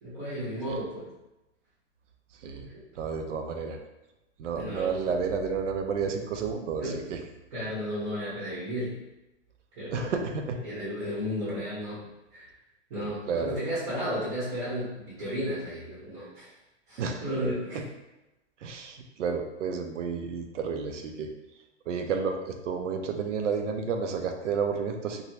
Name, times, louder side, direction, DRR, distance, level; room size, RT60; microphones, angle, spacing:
voice 1, 0.0-1.1 2.4-2.8 4.5-4.9 6.8-7.0 7.5-8.9 9.7-10.1 10.6-12.0 12.3-12.5 12.9-16.5 16.9-17.8, equal, 40° right, -12 dB, 1.3 m, -33 dB
voice 2, 3.0-3.8 4.4-7.2 9.9-10.6 13.3-13.6 17.0-17.2 17.7-17.8 18.6-21.3 21.9-25.2, right 5 dB, 85° right, 5 dB, 0.6 m, -31 dB
3.1 x 2.2 x 2.8 m, 1.0 s
hypercardioid pair, 155°, 35 cm